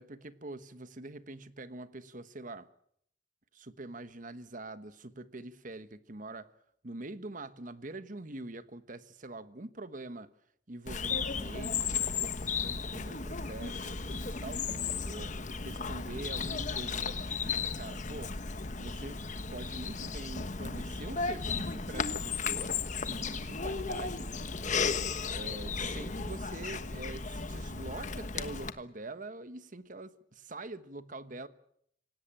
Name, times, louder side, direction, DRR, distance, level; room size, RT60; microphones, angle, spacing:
voice 1, 0.0-2.7 3.5-6.5 6.8-10.3 10.7-18.4 18.8-24.3 24.6-24.9 25.3-31.5, right 2 dB, 45° right, 1.3 m, -45 dB
Bird vocalization bird call bird song, 10.9-28.7, left 5 dB, 40° left, 1.3 m, -35 dB
26.5 x 17.5 x 9.0 m
head